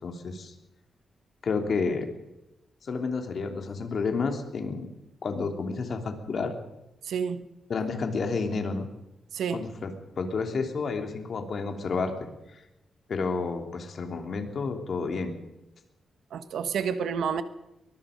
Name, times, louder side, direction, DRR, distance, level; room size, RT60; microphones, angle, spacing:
voice 1, 0.0-0.5 1.4-2.1 2.8-4.9 5.2-6.5 7.7-8.9 9.5-9.9 10.2-12.1 12.5-12.6 13.1-15.3, left 4 dB, 50° left, 3.2 m, -30 dB
voice 2, 7.0-7.4 9.3-9.7 16.3-17.4, right 6 dB, 85° right, 1.4 m, -29 dB
23.0 x 21.5 x 5.3 m
wide cardioid pair, 140°, 0 cm